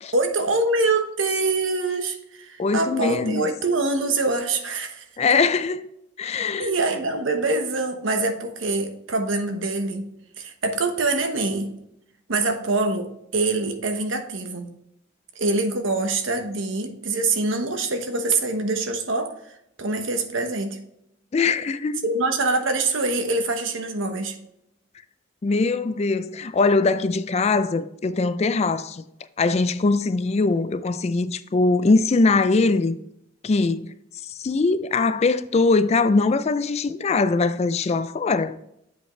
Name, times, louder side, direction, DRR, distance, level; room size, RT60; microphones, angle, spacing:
voice 1, 0.1-5.0 6.6-10.1 10.4-11.7 12.3-14.7 15.4-19.3 19.8-20.8 22.0-24.4, right 3 dB, 80° right, 1.1 m, -24 dB
voice 2, 2.6-3.4 5.2-5.9 6.2-6.7 21.3-22.0 25.4-29.0 29.4-33.0 33.4-33.9 34.3-38.6, left 3 dB, 35° left, 0.4 m, -21 dB
8.5 x 5.2 x 3.1 m
head